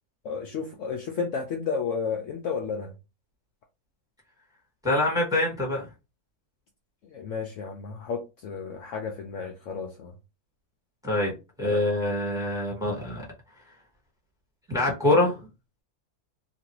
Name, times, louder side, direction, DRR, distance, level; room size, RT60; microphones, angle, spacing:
voice 1, 0.2-2.9 7.0-10.1 11.6-11.8, left 5 dB, 65° left, 0.8 m, -32 dB
voice 2, 4.8-5.9 11.0-13.2 14.7-15.4, left 2 dB, 5° right, 1.1 m, -25 dB
3.0 x 2.5 x 2.9 m
omnidirectional pair, 1.6 m